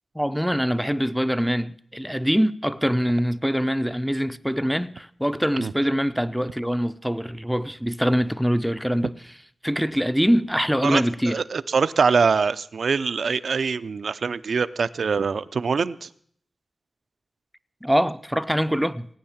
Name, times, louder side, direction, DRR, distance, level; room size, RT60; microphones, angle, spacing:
voice 1, 0.1-9.2 9.6-11.4 17.8-19.1, equal, ahead, 0.6 m, -23 dB
voice 2, 10.8-16.1, right 5 dB, 80° right, 0.6 m, -24 dB
18.0 x 9.5 x 7.2 m
wide cardioid pair, 100°, 0 cm